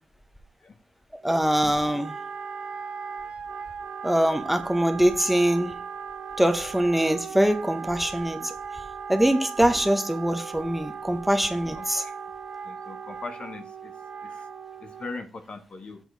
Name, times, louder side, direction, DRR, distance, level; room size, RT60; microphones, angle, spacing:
voice 1, 1.2-2.1 4.0-5.7 6.4-8.5 9.1-12.0, right 1 dB, 5° right, 7 dB, 1.0 m, -23 dB
Wind instrument woodwind instrument, 1.2-15.3, right 6 dB, 65° right, 0.6 m, -38 dB
voice 2, 11.8-12.1 12.6-13.9 14.2-14.4 14.8-16.0, left 3 dB, 55° left, 6 dB, 1.1 m, -40 dB
7.3 x 4.3 x 4.1 m, 0.36 s
cardioid pair, 50°, 2 cm